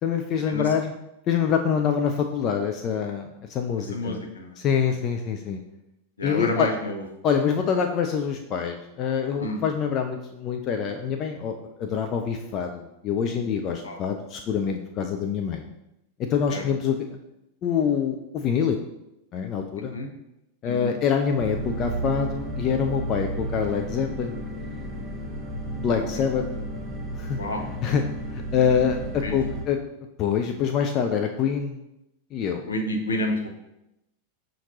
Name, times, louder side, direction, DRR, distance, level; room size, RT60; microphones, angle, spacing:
voice 1, 0.0-0.9 1.3-4.2 4.6-5.6 6.2-6.7 7.2-15.6 16.3-17.0 17.6-18.8 19.3-20.0 20.6-24.3 25.8-26.4 27.2-27.4 27.8-28.0 28.3-29.8 30.2-31.8 32.3-32.7, left 7 dB, 35° left, 4 dB, 0.3 m, -25 dB
voice 2, 3.9-4.6 4.8-4.9 6.2-7.0 9.4-9.6 13.8-14.0 16.5-16.6 19.8-20.1 20.6-20.9 26.0-26.2 27.4-27.6 29.2-29.3 32.7-33.5, left 1 dB, 70° left, 3 dB, 0.6 m, -29 dB
sound 1, 21.4-29.6, right 1 dB, 15° right, 0.7 m, -33 dB
5.6 x 2.5 x 2.9 m, 0.88 s
figure-of-eight pair, 90°, 0 cm